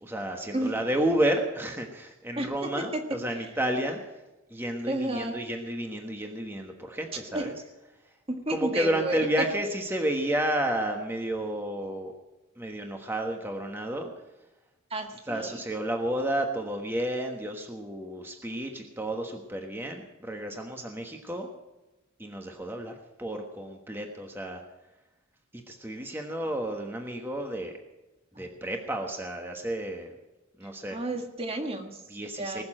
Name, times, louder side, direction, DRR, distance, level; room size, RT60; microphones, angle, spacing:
voice 1, 0.0-4.0 4.5-7.5 8.5-12.2 12.6-14.1 15.3-21.5 22.2-24.6 25.7-27.7 28.4-30.2 30.6-31.0 32.1-32.6, right 1 dB, 10° right, 3 dB, 1.3 m, -31 dB
voice 2, 2.4-3.2 4.9-5.4 7.1-7.6 8.3-9.5 14.9-15.6 28.4-28.5 30.9-32.0 32.4-32.6, right 1 dB, 25° right, 4 dB, 1.8 m, -32 dB
20.0 x 7.1 x 8.9 m, 1.0 s
head